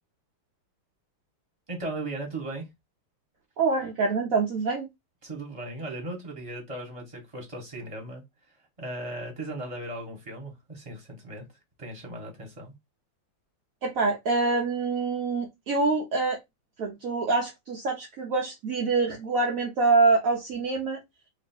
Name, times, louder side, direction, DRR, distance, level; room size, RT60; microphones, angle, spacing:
voice 1, 1.7-2.7 5.2-8.2 8.8-11.4 11.8-12.7, right 2 dB, 15° right, 1.4 m, -37 dB
voice 2, 3.6-4.9 13.8-16.4 16.8-21.0, right 3 dB, 65° right, 0.8 m, -25 dB
3.1 x 3.0 x 4.4 m
omnidirectional pair, 2.3 m